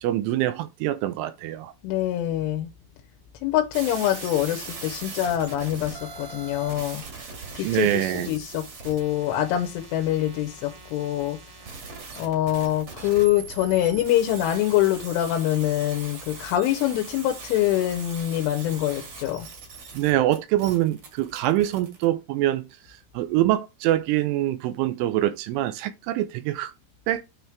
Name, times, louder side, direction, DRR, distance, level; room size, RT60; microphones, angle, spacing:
voice 1, 0.0-1.7 7.6-8.3 19.9-22.7 23.1-26.7 27.1-27.2, right 14 dB, 85° right, 3.0 m, -24 dB
voice 2, 1.8-2.7 3.4-7.0 7.5-11.4 12.2-19.5, left 13 dB, 85° left, 3.2 m, -25 dB
sound 1, 3.7-22.1, right 4 dB, 55° right, 1.7 m, -41 dB
9.2 x 3.5 x 4.5 m
omnidirectional pair, 5.8 m